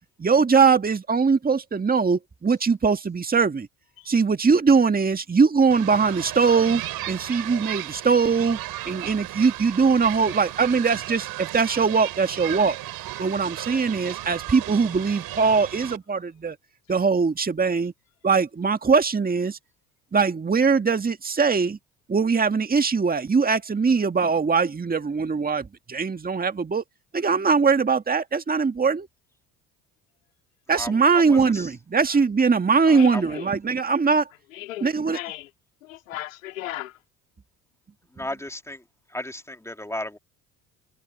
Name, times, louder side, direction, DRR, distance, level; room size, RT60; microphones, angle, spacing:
voice 1, 0.2-3.7 4.1-6.8 7.1-8.6 8.9-12.8 13.2-16.6 16.9-17.9 18.2-19.6 20.1-21.8 22.1-26.8 27.1-29.1 30.7-34.3 34.8-35.2, right 5 dB, 25° right, 1.9 m, -21 dB
sound 1, 5.7-16.0, right 15 dB, 65° right, 5.0 m, -35 dB
voice 2, 30.7-31.7 32.9-33.3 38.1-38.8 39.1-40.2, left 1 dB, 5° left, 2.9 m, -35 dB
voice 3, 32.9-33.5 34.5-35.5 35.8-37.0, left 14 dB, 90° left, 3.4 m, -36 dB
hypercardioid pair, 60°, 38 cm